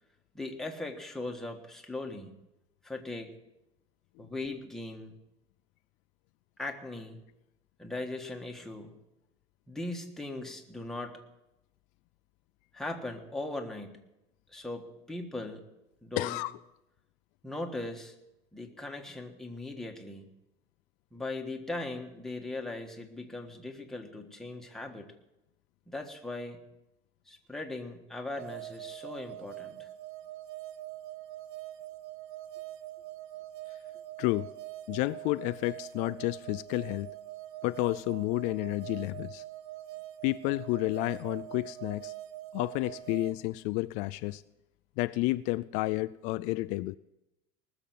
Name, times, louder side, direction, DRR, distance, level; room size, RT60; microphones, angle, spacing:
voice 1, 0.3-2.4 2.8-3.3 4.2-5.1 6.6-7.2 7.8-9.0 9.7-11.2 12.7-14.0 14.5-15.6 16.0-16.4 17.4-18.1 18.5-20.2 21.1-25.1 25.9-26.6 27.3-29.9, left 2 dB, 5° left, 1 dB, 1.5 m, -39 dB
voice 2, 16.2-16.6 34.2-34.5 34.9-37.1 37.6-39.4 40.2-42.1 42.5-44.4 45.0-47.0, left 20 dB, 65° left, 14 dB, 0.4 m, -31 dB
sound 1, 28.4-43.3, right 15 dB, 85° right, 0.8 m, -44 dB
19.5 x 7.0 x 7.7 m, 0.91 s
cardioid pair, 150°, 14 cm